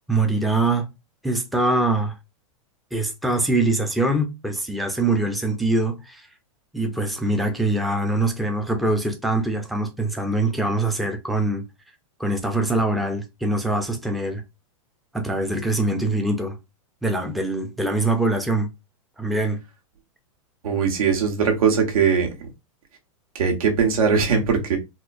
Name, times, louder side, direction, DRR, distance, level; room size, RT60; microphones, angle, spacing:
voice 1, 0.1-0.9 1.2-2.1 2.9-6.3 6.7-11.6 12.2-14.4 15.1-16.6 17.0-18.7 19.2-19.6, right 2 dB, ahead, 0.3 m, -23 dB
voice 2, 20.6-22.3 23.3-24.8, right 6 dB, 85° right, 1.4 m, -20 dB
4.2 x 2.2 x 2.5 m
supercardioid pair, 150°, 18 cm